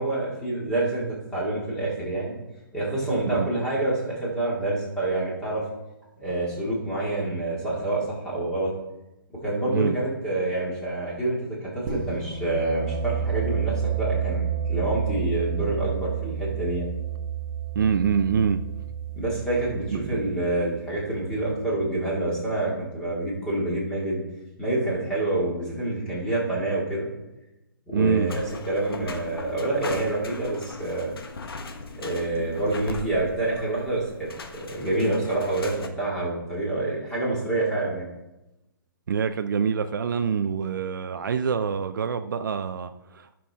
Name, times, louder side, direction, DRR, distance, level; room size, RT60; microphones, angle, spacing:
voice 1, 0.0-2.4 2.7-5.6 6.2-8.7 9.4-16.9 19.1-24.2 24.6-27.1 27.9-28.4 28.7-31.2 31.9-38.1, right 2 dB, 5° left, 2.2 m, -27 dB
sound 1, 11.9-21.5, right 8 dB, 20° right, 1.0 m, -30 dB
voice 2, 17.7-18.6 19.9-20.2 27.9-28.3 39.1-43.3, right 6 dB, 60° right, 0.5 m, -25 dB
sound 2, 28.3-35.9, left 3 dB, 90° left, 1.3 m, -39 dB
14.5 x 6.1 x 3.6 m
hypercardioid pair, 175°, 12 cm